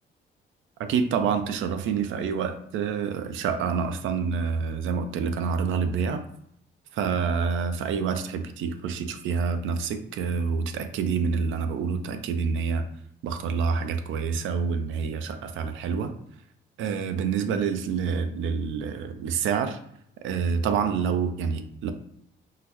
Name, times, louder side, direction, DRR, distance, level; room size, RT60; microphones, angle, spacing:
voice 1, 0.8-6.2 6.9-12.9 13.2-16.1 16.8-19.8 20.2-21.9, right 6 dB, 80° right, 8 dB, 0.4 m, -27 dB
3.8 x 2.1 x 2.9 m, 0.71 s
cardioid pair, 90°, 20 cm